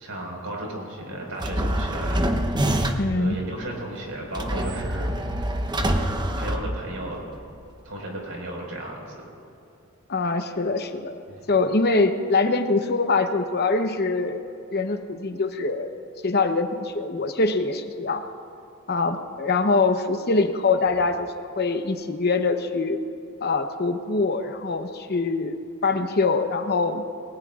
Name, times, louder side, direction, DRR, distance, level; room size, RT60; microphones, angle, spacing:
voice 1, 0.0-2.3 3.1-5.1 5.9-7.2 7.8-9.3 11.3-11.4, right 1 dB, 65° right, -1 dB, 5.0 m, -34 dB
sound 1, 1.4-3.2 4.3-7.2, right 1 dB, 20° right, 0.8 m, -25 dB
voice 2, 3.0-3.4 10.1-11.2 11.5-14.4 14.7-15.9 16.2-18.2 18.9-23.0 23.4-25.6 25.8-27.0, left 3 dB, 45° left, 6 dB, 0.9 m, -23 dB
28.5 x 20.0 x 2.5 m, 2.7 s
head